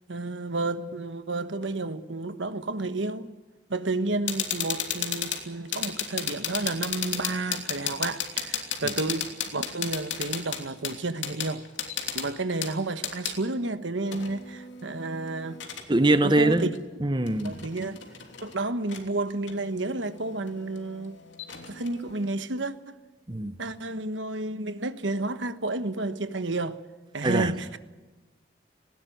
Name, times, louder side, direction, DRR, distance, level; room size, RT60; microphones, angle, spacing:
voice 1, 0.1-3.3 3.7-11.6 12.1-15.6 16.2-16.7 17.4-18.0 18.4-21.2 21.7-23.0 23.6-26.8 27.1-27.8, right 2 dB, 85° right, 1.3 m, -31 dB
sound 1, 4.3-13.4 14.1-15.9 16.7-16.8 17.3-18.6 18.9-19.0 19.5-22.3, left 8 dB, 85° left, 3.1 m, -34 dB
voice 2, 15.9-16.7 17.0-17.6 23.3-23.5 27.2-27.5, right 2 dB, 25° right, 0.9 m, -22 dB
19.0 x 18.0 x 9.3 m
head